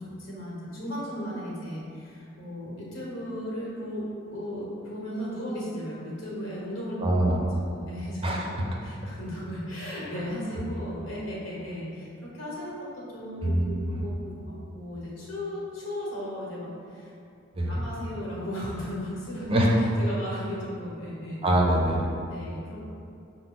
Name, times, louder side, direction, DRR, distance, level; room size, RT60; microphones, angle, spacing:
voice 1, 0.2-7.0 7.7-8.5 8.8-17.1 17.7-19.5 20.0-21.4 22.3-22.8, equal, 80° left, -6 dB, 1.2 m, -36 dB
voice 2, 7.0-7.4 8.2-8.7 10.1-10.2 13.4-14.0 17.5-17.8 19.5-19.7 21.4-22.1, right 1 dB, 30° right, -2 dB, 0.5 m, -24 dB
5.6 x 2.2 x 3.8 m, 2.5 s
head